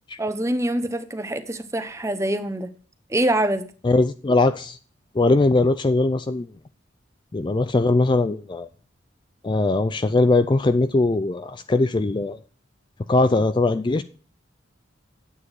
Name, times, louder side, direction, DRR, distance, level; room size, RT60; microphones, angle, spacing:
voice 1, 0.2-2.7 3.1-3.6, right 1 dB, 15° right, 0.8 m, -24 dB
voice 2, 3.8-4.8 5.1-6.5 7.3-8.7 9.4-12.4 13.1-14.0, left 2 dB, 25° left, 0.4 m, -20 dB
9.7 x 8.4 x 4.7 m
head